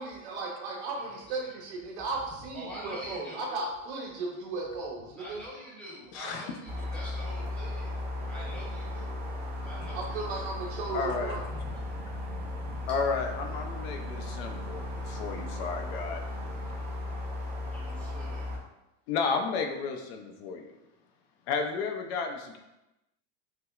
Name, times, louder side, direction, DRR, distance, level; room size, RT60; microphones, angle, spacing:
voice 1, 0.0-5.4 9.9-11.4, right 3 dB, 70° right, -1 dB, 1.0 m, -35 dB
voice 2, 1.0-1.6 2.5-3.5 5.2-8.0 8.2-9.1 9.6-10.5 11.3-12.9 17.7-18.4, equal, 5° left, -6 dB, 0.9 m, -45 dB
sound 1, 6.7-18.6, left 2 dB, 30° right, 0.6 m, -36 dB
voice 3, 10.9-11.4 12.9-16.2 19.1-20.7 21.5-22.6, left 5 dB, 60° left, 4 dB, 0.5 m, -32 dB
5.8 x 2.0 x 2.4 m, 0.96 s
supercardioid pair, 150°, 35 cm